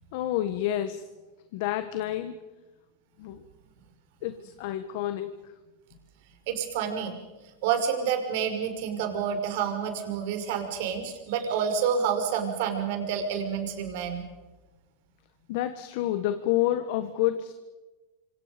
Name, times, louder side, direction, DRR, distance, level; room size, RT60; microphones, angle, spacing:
voice 1, 0.1-1.1 1.5-2.4 3.2-3.4 4.2-5.5 15.5-17.5, left 13 dB, 60° left, 9 dB, 1.6 m, -29 dB
voice 2, 6.5-7.1 7.6-14.3, right 7 dB, 65° right, 6 dB, 5.5 m, -28 dB
27.5 x 26.0 x 5.3 m, 1.2 s
supercardioid pair, 135°, 0 cm